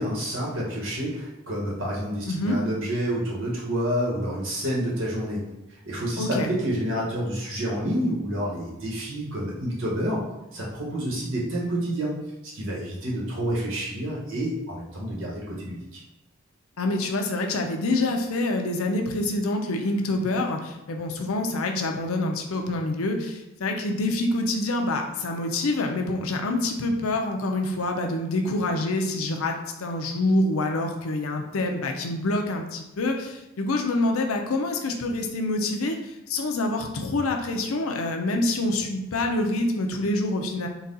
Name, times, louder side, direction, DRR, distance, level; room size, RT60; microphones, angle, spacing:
voice 1, 0.0-5.4 5.9-10.2 10.5-12.2 12.5-16.0, equal, 70° right, -4 dB, 1.2 m, -28 dB
voice 2, 2.3-2.6 6.2-6.5 16.8-40.7, left 2 dB, 90° left, 3 dB, 0.6 m, -26 dB
4.0 x 2.3 x 3.9 m, 0.95 s
head